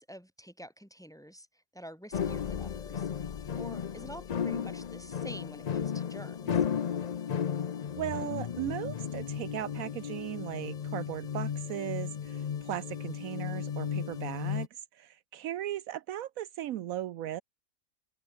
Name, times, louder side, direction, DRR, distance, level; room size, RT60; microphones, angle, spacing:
voice 1, 0.0-3.3 3.6-6.7, equal, ahead, 3.1 m, -48 dB
sound 1, 2.1-14.7, left 8 dB, 55° left, 0.4 m, -34 dB
voice 2, 8.0-14.7 14.9-17.4, right 12 dB, 75° right, 1.1 m, -37 dB
open air
omnidirectional pair, 1.5 m